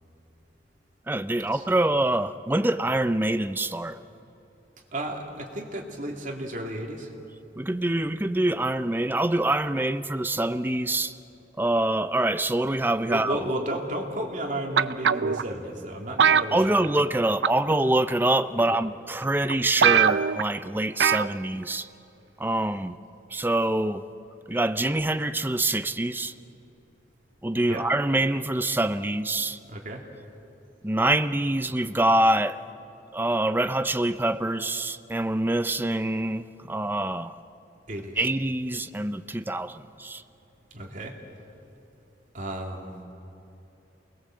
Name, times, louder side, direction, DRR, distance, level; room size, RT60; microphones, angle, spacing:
voice 1, 1.1-4.0 7.6-11.2 11.6-13.4 16.5-21.9 22.4-23.0 23.3-24.0 24.5-26.3 27.4-29.6 30.8-32.6 33.1-37.4 38.2-40.2, right 1 dB, 10° right, 0.5 m, -25 dB
voice 2, 4.9-7.1 13.1-16.8 27.7-27.9 29.7-30.1 37.9-38.3 40.7-41.2 42.3-42.9, right 1 dB, 45° right, 2.8 m, -33 dB
sound 1, 14.8-15.4 16.2-17.1 17.4-17.7 18.6-18.7 19.2-19.3 19.5-19.6 19.8-20.5 21.0-21.3 21.6-21.7, right 7 dB, 90° right, 0.5 m, -21 dB
28.5 x 20.5 x 7.7 m
head